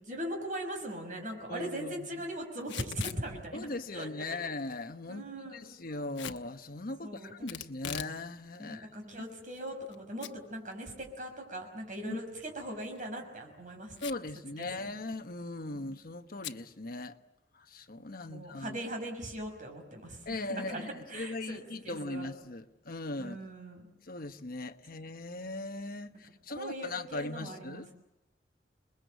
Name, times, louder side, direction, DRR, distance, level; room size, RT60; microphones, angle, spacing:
voice 1, 0.0-3.7 3.9-4.1 5.1-5.6 7.0-7.3 8.6-13.9 14.6-14.9 18.3-22.3 23.2-23.9 26.6-27.8, right 1 dB, 45° right, 6.0 m, -40 dB
voice 2, 1.5-2.1 3.5-8.9 12.0-12.2 14.0-17.2 17.5-18.8 20.3-23.4 24.1-27.9, left 2 dB, 55° left, 1.1 m, -39 dB
Packing tape duct tape / Tearing, 2.6-3.2 6.1-6.4 7.5-8.2 8.5-8.6 9.3-9.9 10.2-10.3 10.7-10.8 12.8-13.0 14.0-14.3 14.6-14.7 15.0-15.3 16.4-16.6, left 9 dB, 85° left, 1.1 m, -41 dB
28.5 x 21.0 x 8.2 m
head